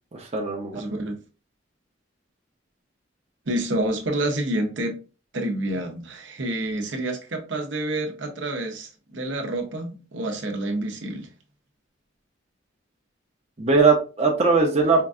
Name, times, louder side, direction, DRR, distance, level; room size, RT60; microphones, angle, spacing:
voice 1, 0.2-0.8 13.6-15.0, right 4 dB, 35° right, 0.7 m, -20 dB
voice 2, 0.7-1.2 3.5-5.0 5.3-11.3, right 1 dB, 75° right, 0.8 m, -28 dB
4.4 x 2.6 x 2.3 m
head